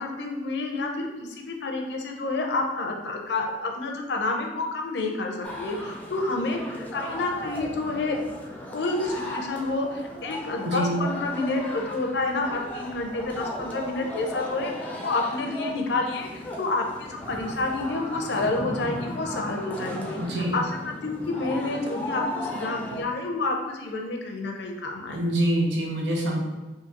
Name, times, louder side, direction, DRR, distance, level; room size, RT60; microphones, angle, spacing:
voice 1, 0.0-8.2 8.7-20.2 20.5-20.6 21.0-25.2, left 2 dB, 70° left, 2 dB, 0.5 m, -29 dB
sound 1, 5.4-23.0, left 1 dB, 10° left, 0.4 m, -36 dB
voice 2, 10.6-11.0 20.2-20.6 25.1-26.4, right 1 dB, 85° right, 0 dB, 0.7 m, -25 dB
3.8 x 2.7 x 2.8 m, 1.2 s
head